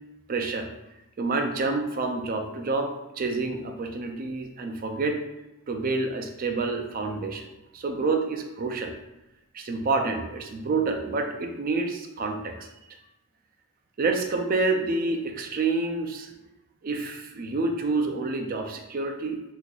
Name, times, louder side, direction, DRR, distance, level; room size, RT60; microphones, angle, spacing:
voice 1, 0.3-0.7 1.2-5.2 5.7-7.5 7.7-8.9 9.5-12.7 14.0-16.3 16.8-19.4, right 3 dB, 40° right, 4 dB, 0.4 m, -28 dB
2.8 x 2.5 x 3.7 m, 0.92 s
head